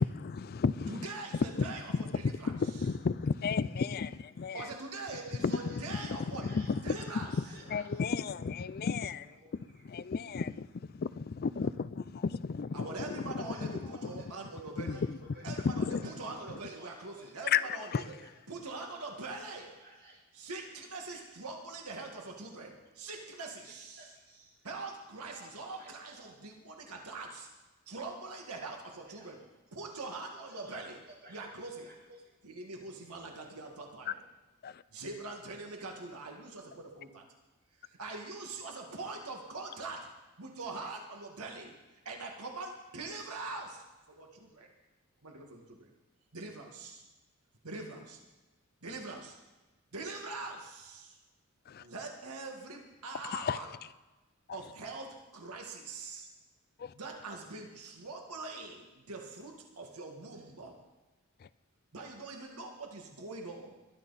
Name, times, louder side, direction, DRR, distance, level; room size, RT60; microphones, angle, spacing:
voice 1, 0.0-1.1 1.3-4.7 5.4-6.0 6.3-7.0 7.7-9.2 9.9-13.7 14.0-14.1 14.8-15.2 15.5-16.0 17.5-17.6 17.9-18.0 34.1-34.2 34.6-34.8 51.7-51.8 53.2-53.7 56.8-56.9 61.4-61.5, left 5 dB, 45° left, 16 dB, 0.4 m, -33 dB
voice 2, 0.9-2.5 4.5-6.5 6.8-7.3 12.7-15.0 15.4-18.2 18.5-19.7 20.4-24.0 24.6-27.5 27.9-29.4 29.7-31.0 31.3-31.9 32.4-34.2 34.9-37.3 37.8-43.8 44.1-44.7 45.2-45.9 46.3-47.0 47.6-48.2 48.8-49.4 49.9-51.2 51.8-53.7 54.5-56.3 56.9-60.8 61.9-63.8, right 3 dB, 85° right, 2 dB, 1.9 m, -43 dB
voice 3, 2.8-3.9 4.1-4.8 5.1-7.1 7.4-10.5 11.1-11.2 13.3-18.7 19.0-20.2 21.0-21.3 22.2-23.3 23.6-24.7 25.2-26.4 28.6-29.9 30.3-31.5 31.8-32.4 32.9-33.2, right 1 dB, 45° right, -2 dB, 5.6 m, -58 dB
21.5 x 12.0 x 4.1 m, 1.1 s
head